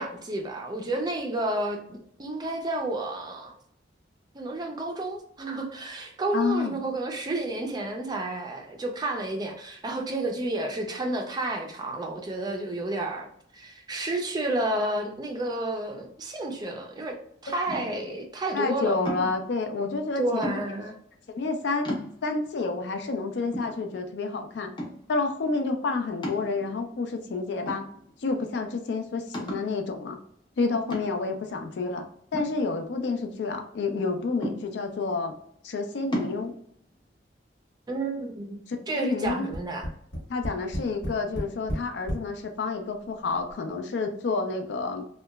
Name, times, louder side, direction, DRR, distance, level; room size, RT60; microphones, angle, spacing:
voice 1, 0.0-3.5 4.3-13.3 13.5-17.2 17.4-19.0 20.2-21.0 37.9-38.5 38.9-39.9, right 2 dB, 20° right, 2 dB, 0.4 m, -31 dB
voice 2, 6.3-6.8 18.5-20.6 21.3-21.9 22.2-24.7 25.1-27.8 28.2-30.2 30.6-32.0 32.3-35.3 35.6-36.5 38.9-39.5 40.3-45.1, left 3 dB, 65° left, 6 dB, 0.4 m, -29 dB
sound 1, 17.7-18.1 19.0-19.5 20.4-20.9 21.4-21.5 21.8-22.5 23.0-23.1 23.5-24.3 24.8-25.2 26.2-27.0 27.7-28.3 28.6-28.7 29.3-29.8 30.9-31.4 32.3-33.2 34.4-35.0 36.1-36.4, equal, 25° left, 0.6 m, -35 dB
Tap, 39.2-42.3 43.1-43.2 43.5-43.6, equal, 85° left, 1.1 m, -33 dB
2.8 x 2.2 x 2.2 m, 0.69 s
head